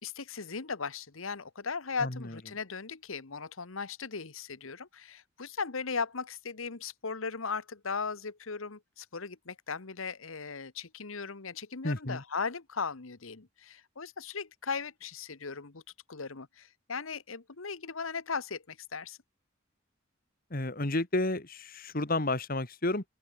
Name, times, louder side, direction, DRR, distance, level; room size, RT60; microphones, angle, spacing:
voice 1, 0.0-15.8 16.1-19.2, left 5 dB, 80° left, 1.3 m, -37 dB
voice 2, 2.0-2.3 11.8-12.2 20.5-23.0, left 2 dB, 45° left, 2.1 m, -31 dB
open air
head